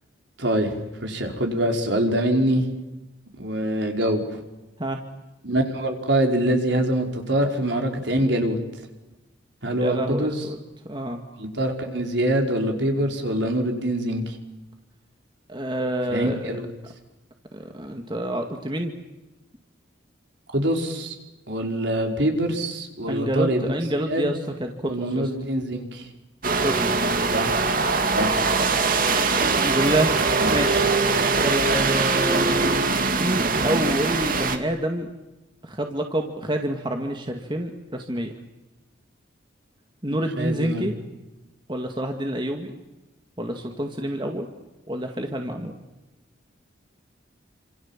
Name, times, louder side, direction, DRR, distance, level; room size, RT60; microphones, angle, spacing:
voice 1, 0.4-0.7 1.0-2.6 3.4-4.2 5.4-8.6 9.6-10.5 11.4-14.2 16.1-16.7 20.5-21.1 21.5-23.7 24.1-24.3 24.9-26.1 27.3-27.5 28.1-28.3 40.4-40.9, right 1 dB, 65° right, 3 dB, 5.2 m, -24 dB
voice 2, 9.8-10.6 10.9-11.2 15.5-16.6 17.5-18.9 23.1-25.3 26.6-27.1 29.6-31.1 31.4-32.8 33.1-35.1 35.6-38.3 40.0-40.9 41.7-42.7 43.4-44.5 44.9-45.8, right 1 dB, 25° right, 4 dB, 2.2 m, -28 dB
sound 1, 26.4-34.6, right 4 dB, 45° right, 2.5 m, -22 dB
29.5 x 27.0 x 7.5 m, 1.0 s
head